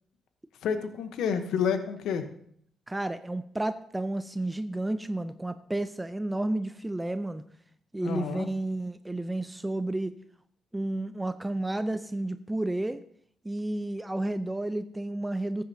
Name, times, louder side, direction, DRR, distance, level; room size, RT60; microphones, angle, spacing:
voice 1, 0.6-2.2 8.0-8.5, left 7 dB, 75° left, 9 dB, 0.9 m, -29 dB
voice 2, 2.9-7.4 7.9-10.2 10.7-13.0 13.4-15.6, right 1 dB, 15° right, 11 dB, 0.5 m, -31 dB
14.5 x 9.1 x 2.8 m, 0.64 s
supercardioid pair, 60°, 0 cm